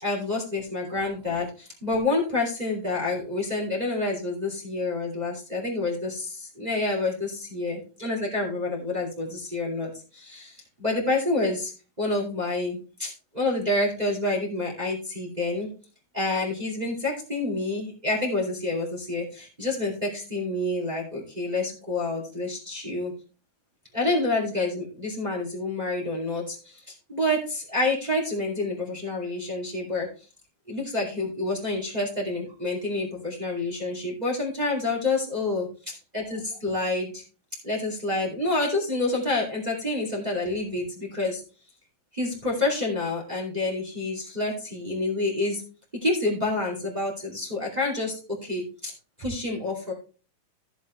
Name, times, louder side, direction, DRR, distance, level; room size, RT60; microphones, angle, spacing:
voice 1, 0.0-11.7 12.0-15.7 16.1-23.1 23.9-30.1 30.7-35.7 36.1-37.2 37.6-41.4 42.1-45.6 46.0-48.9 49.2-49.9, left 2 dB, 20° right, -2 dB, 1.2 m, -28 dB
14.5 x 7.1 x 3.2 m, 0.35 s
omnidirectional pair, 5.0 m